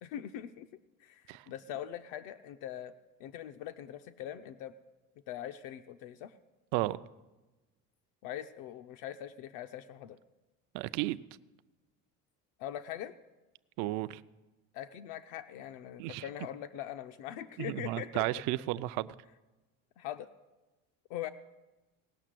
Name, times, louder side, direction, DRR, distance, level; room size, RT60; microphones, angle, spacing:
voice 1, 0.0-0.7 1.0-2.9 3.2-4.7 5.3-6.3 8.2-10.2 12.6-13.1 14.7-18.2 20.0-20.3 21.1-21.3, left 11 dB, 70° left, 0.6 m, -42 dB
voice 2, 10.7-11.2 13.8-14.2 16.0-16.2 17.6-19.1, right 17 dB, 60° right, 0.4 m, -33 dB
18.0 x 6.5 x 7.6 m
cardioid pair, 175°, 33 cm